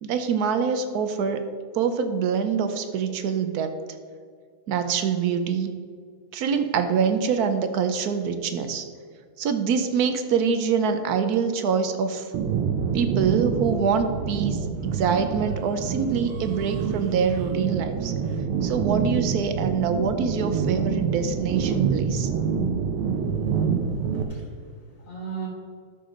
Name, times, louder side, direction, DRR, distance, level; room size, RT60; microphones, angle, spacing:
voice 1, 0.0-3.7 4.7-5.8 6.3-8.9 9.4-12.3 12.9-18.2 18.6-22.3, right 6 dB, 70° right, 9 dB, 0.9 m, -25 dB
sound 1, 12.3-24.2, right 6 dB, 90° right, 1.7 m, -27 dB
voice 2, 23.5-25.5, right 6 dB, 75° left, -8 dB, 2.6 m, -39 dB
12.5 x 6.6 x 3.8 m, 2.1 s
omnidirectional pair, 2.3 m